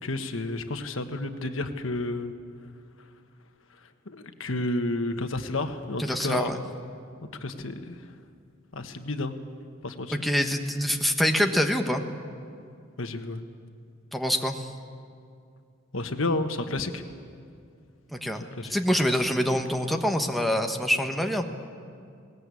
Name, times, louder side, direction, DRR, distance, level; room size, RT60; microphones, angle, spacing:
voice 1, 0.0-2.3 4.1-6.5 7.4-8.0 8.7-9.4 9.8-10.2 13.0-13.4 15.9-17.0 18.6-18.8, left 2 dB, 85° left, 7 dB, 1.3 m, -31 dB
voice 2, 6.0-6.6 10.1-12.0 14.1-14.7 18.1-21.4, equal, ahead, 3 dB, 1.2 m, -25 dB
21.0 x 18.5 x 8.4 m, 2.4 s
head